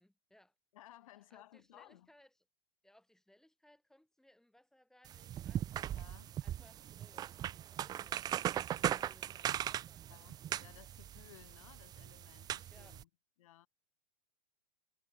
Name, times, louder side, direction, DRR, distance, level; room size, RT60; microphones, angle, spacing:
voice 1, 0.0-0.5 1.1-2.3 2.8-5.8 6.4-7.3 7.7-8.3 8.7-10.1 12.7-13.0, left 1 dB, 5° left, 6.3 m, -66 dB
voice 2, 0.7-2.1 6.0-6.3 10.1-13.1 13.4-13.7, left 15 dB, 70° left, 2.5 m, -59 dB
sound 1, 5.1-13.0, right 11 dB, 20° right, 0.3 m, -39 dB
hypercardioid pair, 105°, 18 cm